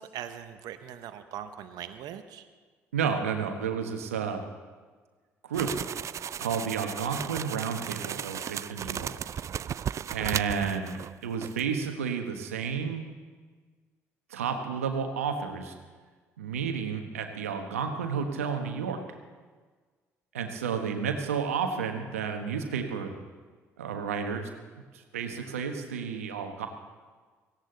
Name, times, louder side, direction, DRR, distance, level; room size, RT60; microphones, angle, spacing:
voice 1, 0.0-2.5, right 10 dB, 65° right, 9 dB, 0.9 m, -41 dB
voice 2, 2.9-4.4 5.4-5.8 6.4-9.2 10.1-13.1 14.3-15.7 16.4-19.0 20.3-23.1 23.8-24.5 24.7-26.7, right 6 dB, 85° right, 5 dB, 1.2 m, -31 dB
sound 1, 5.5-11.1 11.4-11.6, right 9 dB, 45° right, 0.3 m, -35 dB
18.0 x 16.0 x 3.9 m, 1.5 s
hypercardioid pair, 55°, 7 cm